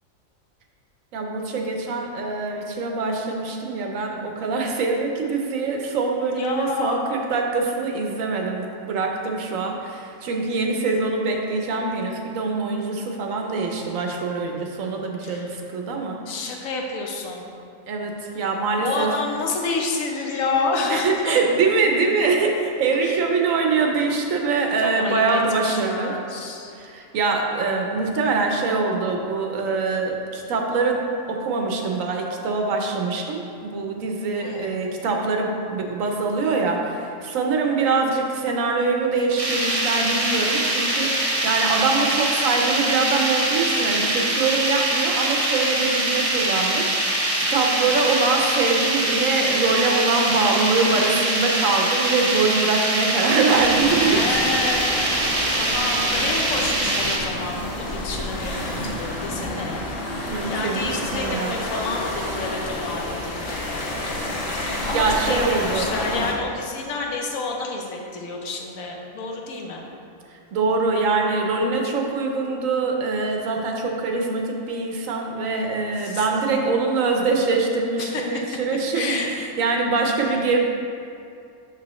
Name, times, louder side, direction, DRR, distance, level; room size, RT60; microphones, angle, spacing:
voice 1, 1.1-16.2 17.9-19.1 20.9-26.1 26.8-31.0 31.3-54.4 60.3-61.6 64.7-65.9 70.3-80.6, right 4 dB, 80° right, 2 dB, 1.1 m, -24 dB
voice 2, 6.3-7.1 15.2-15.5 16.3-17.5 18.8-21.4 23.0-23.2 24.8-26.7 34.3-34.7 47.7-48.0 54.0-54.8 55.5-59.9 60.2-63.9 64.5-69.9 76.0-76.3 78.0-78.5 78.9-79.3 80.1-80.4, left 3 dB, 80° left, 1 dB, 1.2 m, -29 dB
sound 1, 39.4-57.2, right 1 dB, 35° right, 0.6 m, -23 dB
sound 2, 53.5-66.3, left 1 dB, 50° left, 1.0 m, -29 dB
6.1 x 5.8 x 3.0 m, 2.5 s
omnidirectional pair, 1.4 m